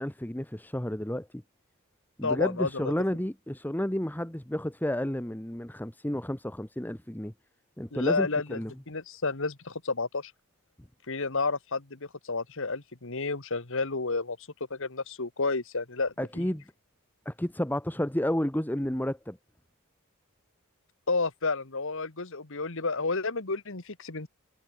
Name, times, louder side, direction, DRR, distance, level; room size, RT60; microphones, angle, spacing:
voice 1, 0.0-1.4 2.2-7.3 7.8-8.7 16.2-16.6 17.2-19.4, left 1 dB, 10° left, 1.2 m, -31 dB
voice 2, 2.2-2.9 7.9-8.6 8.9-10.3 11.1-14.4 14.7-16.5 21.1-24.3, left 3 dB, 60° left, 1.7 m, -31 dB
head